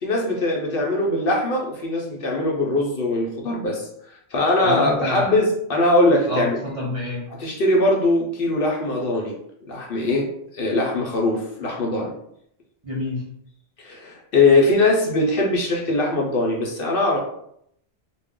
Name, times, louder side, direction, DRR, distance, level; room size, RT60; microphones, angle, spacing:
voice 1, 0.0-6.6 7.4-9.4 9.6-12.1 13.8-17.2, left 2 dB, 60° left, -1 dB, 0.7 m, -21 dB
voice 2, 4.6-5.3 6.3-7.3 12.8-13.2, left 1 dB, 40° right, -6 dB, 0.5 m, -28 dB
2.3 x 2.0 x 3.5 m, 0.72 s
omnidirectional pair, 1.2 m